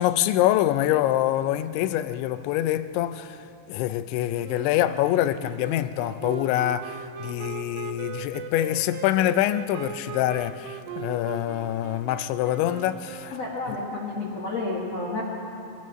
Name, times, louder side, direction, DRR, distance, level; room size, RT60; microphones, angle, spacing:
voice 1, 0.0-13.4, left 13 dB, 85° left, 3.0 m, -25 dB
Wind instrument woodwind instrument, 4.4-13.9, right 7 dB, 80° right, 3.0 m, -39 dB
voice 2, 13.3-15.2, left 2 dB, 45° left, 2.4 m, -30 dB
24.5 x 22.0 x 6.4 m
omnidirectional pair, 5.2 m